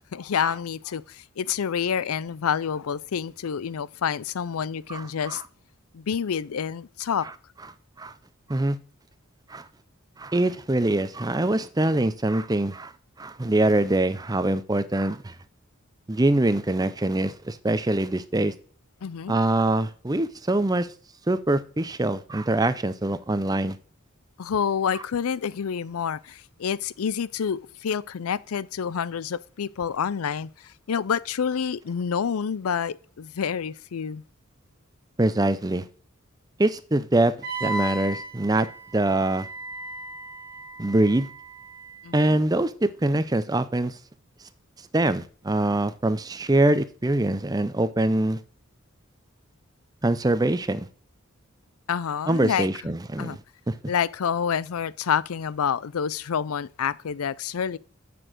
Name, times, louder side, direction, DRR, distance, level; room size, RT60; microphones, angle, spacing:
voice 1, 0.1-5.4 5.9-7.3 19.0-19.3 24.4-34.2 42.0-42.4 51.9-52.7 53.2-53.4 53.9-57.8, left 7 dB, 85° left, 0.5 m, -28 dB
voice 2, 4.9-5.4 8.0-8.1 8.5-8.8 9.5-9.7 10.2-12.9 13.2-15.3 16.1-18.5 19.3-20.9 21.3-23.8 35.2-35.9 36.6-37.3 37.6-38.7 38.9-39.5 40.8-41.3 42.1-44.0 44.9-48.4 50.0-50.9 52.3-53.4 53.7-53.8, right 2 dB, 15° right, 0.5 m, -24 dB
Wind instrument woodwind instrument, 37.4-42.1, right 2 dB, 45° right, 1.7 m, -36 dB
6.9 x 6.3 x 7.8 m
head